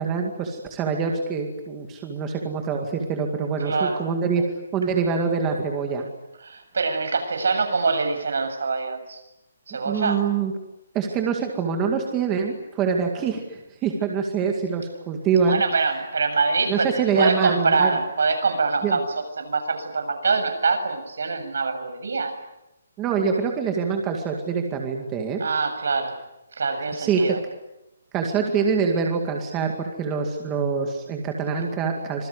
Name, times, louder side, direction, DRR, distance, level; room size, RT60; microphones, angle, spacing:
voice 1, 0.0-4.5 4.7-6.0 9.8-10.5 10.9-15.6 16.7-18.0 18.8-19.0 23.0-25.4 27.0-27.3 28.1-32.3, right 5 dB, 10° right, 2 dB, 2.1 m, -25 dB
voice 2, 3.6-4.0 6.4-9.2 9.7-10.2 15.5-19.0 19.4-22.3 25.4-26.2 26.6-27.4, right 4 dB, 70° right, 7 dB, 7.5 m, -24 dB
26.5 x 22.0 x 9.8 m, 0.90 s
hypercardioid pair, 180°, 0 cm